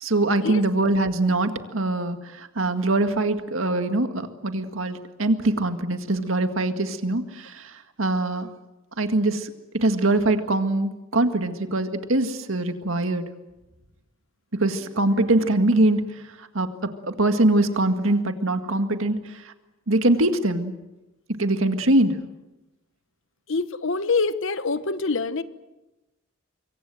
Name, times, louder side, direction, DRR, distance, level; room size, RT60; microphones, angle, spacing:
voice 1, 0.0-8.5 9.0-13.2 14.5-19.5 19.9-20.7 21.4-22.2, right 2 dB, 70° right, 8 dB, 2.0 m, -23 dB
voice 2, 23.5-25.4, left 4 dB, 65° left, 13 dB, 1.1 m, -25 dB
25.5 x 23.5 x 7.7 m, 1.0 s
head